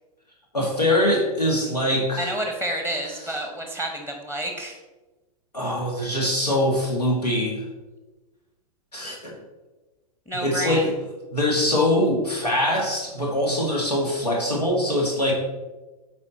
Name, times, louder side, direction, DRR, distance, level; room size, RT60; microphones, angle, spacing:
voice 1, 0.5-2.3 5.5-7.6 8.9-9.4 10.4-10.9 11.3-15.3, left 1 dB, 90° left, -2 dB, 1.7 m, -23 dB
voice 2, 2.2-4.8 10.3-10.9, right 1 dB, 10° left, 3 dB, 0.9 m, -29 dB
8.5 x 4.4 x 4.0 m, 1.2 s
figure-of-eight pair, 100°, 20 cm